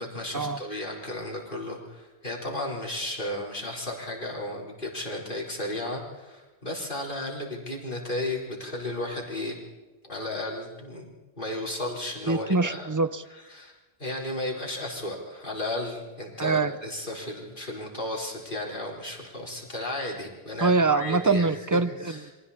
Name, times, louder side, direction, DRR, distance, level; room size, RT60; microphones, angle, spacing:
voice 1, 0.0-9.6 10.0-12.9 13.3-13.7 14.0-21.5 22.0-22.3, left 1 dB, 55° left, -2 dB, 4.5 m, -34 dB
voice 2, 12.3-13.2 16.4-16.7 20.6-22.3, right 3 dB, 20° right, 13 dB, 0.6 m, -24 dB
29.0 x 24.5 x 4.3 m, 1.2 s
omnidirectional pair, 1.1 m